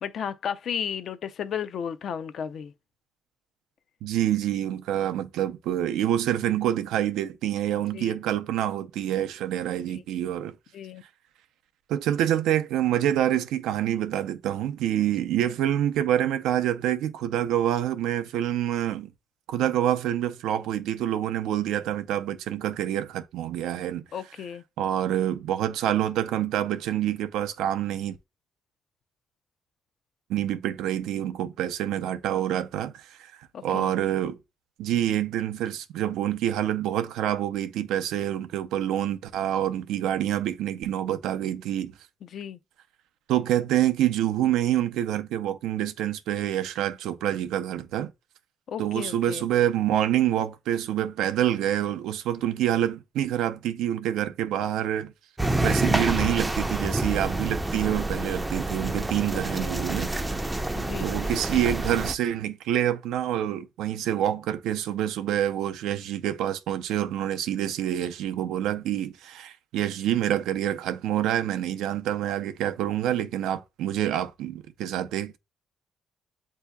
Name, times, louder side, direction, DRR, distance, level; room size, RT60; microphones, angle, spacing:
voice 1, 0.0-2.7 7.7-8.2 9.9-10.0 10.7-11.0 24.1-24.6 33.5-33.9 42.2-42.6 48.7-49.5 59.5-59.7 60.7-61.1, left 8 dB, 65° left, 0.5 m, -34 dB
voice 2, 4.0-10.6 11.9-19.1 19.5-24.1 24.8-28.2 30.3-34.4 34.8-41.9 43.3-48.1 48.8-55.1 55.6-60.1 61.0-75.4, right 11 dB, 90° right, 0.4 m, -27 dB
sound 1, 55.4-62.1, right 2 dB, 10° right, 0.4 m, -28 dB
8.0 x 2.7 x 2.2 m
cardioid pair, 90°, 0 cm